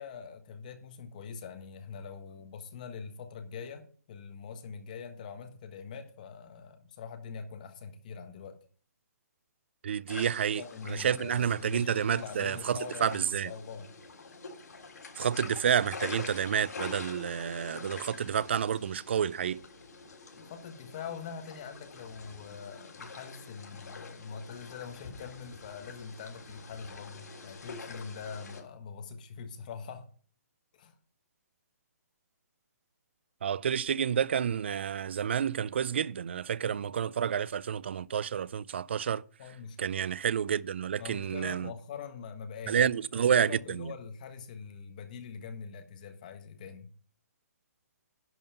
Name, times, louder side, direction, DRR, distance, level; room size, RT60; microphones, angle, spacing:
voice 1, 0.0-8.6 10.5-13.9 20.3-30.1 30.7-30.9 39.4-39.8 41.0-46.9, left 6 dB, 30° left, 1.3 m, -43 dB
voice 2, 9.8-10.6 10.9-13.5 15.2-19.6 33.4-39.2 39.8-41.7 42.7-43.9, right 8 dB, 40° right, 0.4 m, -29 dB
sound 1, 10.1-28.6, left 4 dB, 80° left, 3.5 m, -46 dB
11.0 x 5.5 x 5.6 m
hypercardioid pair, 175°, 9 cm